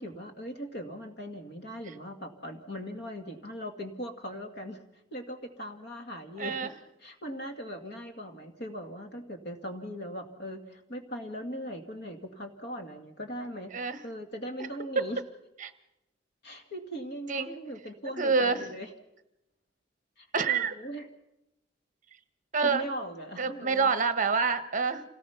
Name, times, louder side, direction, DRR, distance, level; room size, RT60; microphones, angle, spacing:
voice 1, 0.0-4.9 5.1-6.7 7.0-13.7 14.0-15.2 16.4-18.9 20.2-21.1 22.6-23.9, equal, 55° left, 5 dB, 2.1 m, -39 dB
voice 2, 6.4-6.7 13.7-14.0 15.6-15.7 17.3-17.5 18.2-18.7 20.3-20.7 22.5-22.8 23.4-25.0, right 5 dB, 40° right, 11 dB, 1.1 m, -27 dB
27.5 x 18.0 x 5.9 m, 0.90 s
head